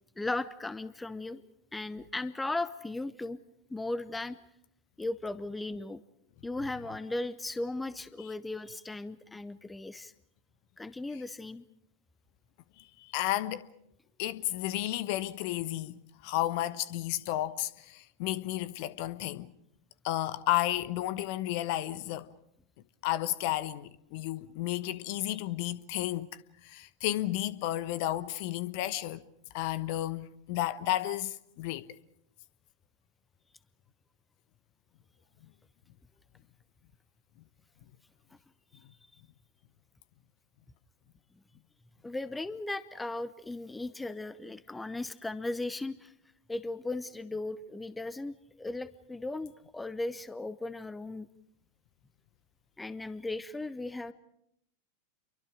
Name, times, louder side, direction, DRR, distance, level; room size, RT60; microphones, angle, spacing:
voice 1, 0.2-1.4 1.7-3.4 3.7-4.4 5.0-6.0 6.4-10.1 10.8-11.7 42.0-46.1 46.5-51.3 52.8-54.1, left 2 dB, 10° left, 0.8 m, -37 dB
voice 2, 13.0-13.7 14.2-19.5 20.0-22.3 23.0-26.3 26.6-29.2 29.5-32.0, left 14 dB, 45° left, 1.1 m, -32 dB
29.5 x 24.0 x 5.1 m
figure-of-eight pair, 90°, 0 cm